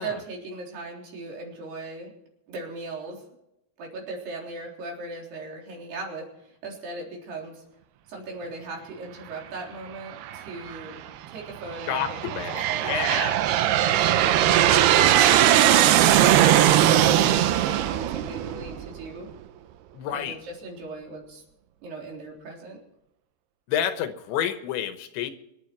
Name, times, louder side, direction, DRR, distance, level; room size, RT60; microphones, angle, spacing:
voice 1, 0.0-2.1 2.5-3.2 3.8-7.6 8.1-11.0 11.3-12.4 12.7-13.2 13.7-14.6 15.2-19.3 20.1-21.4 21.8-22.8, right 3 dB, 60° right, -1 dB, 5.6 m, -38 dB
Aircraft, 10.2-10.8 11.5-19.1, right 12 dB, 75° right, 2.6 m, -20 dB
voice 2, 11.9-13.4 19.9-20.4 23.7-25.3, left 9 dB, 75° left, 8 dB, 3.3 m, -29 dB
25.5 x 10.5 x 4.6 m, 0.83 s
omnidirectional pair, 5.4 m